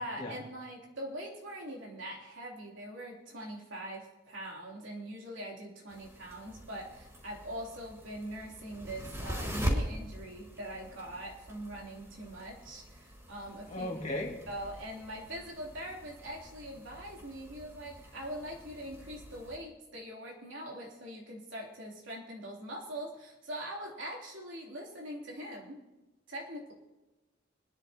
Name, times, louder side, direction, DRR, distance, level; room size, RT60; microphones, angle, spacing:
voice 1, 0.0-13.9 14.5-25.8 26.3-26.7, right 1 dB, 90° right, -2 dB, 3.3 m, -42 dB
sound 1, 5.9-19.6, equal, 15° right, 3.0 m, -42 dB
voice 2, 13.7-14.4, left 1 dB, 40° left, 0 dB, 2.2 m, -36 dB
25.0 x 10.5 x 2.9 m, 1.1 s
head